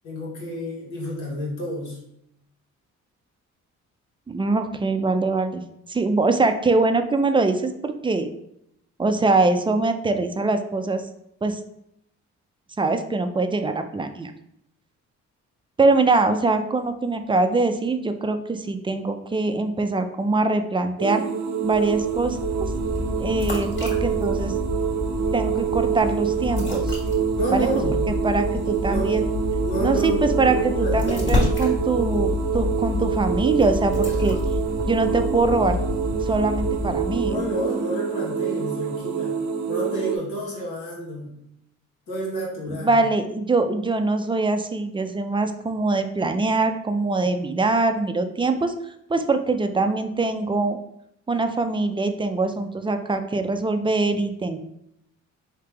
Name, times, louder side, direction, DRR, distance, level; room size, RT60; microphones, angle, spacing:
voice 1, 0.0-2.0 27.4-28.0 28.9-29.3 29.6-31.4 37.2-39.4 39.7-41.4 42.1-43.0, right 1 dB, 90° left, -4 dB, 1.6 m, -30 dB
voice 2, 4.3-5.6 5.9-8.3 9.0-11.0 11.4-11.6 12.8-14.3 15.8-21.3 21.6-22.7 23.2-24.6 25.3-26.9 27.5-27.7 28.2-29.3 29.8-34.4 34.9-35.8 36.2-37.4 42.7-48.7 49.1-50.8 51.3-54.6, right 3 dB, 15° right, 7 dB, 0.4 m, -23 dB
sound 1, 21.0-40.2, right 8 dB, 65° right, 0.6 m, -26 dB
sound 2, 21.7-37.6, left 3 dB, 40° left, 1.6 m, -29 dB
3.4 x 2.9 x 4.5 m, 0.76 s
cardioid pair, 90°, 30 cm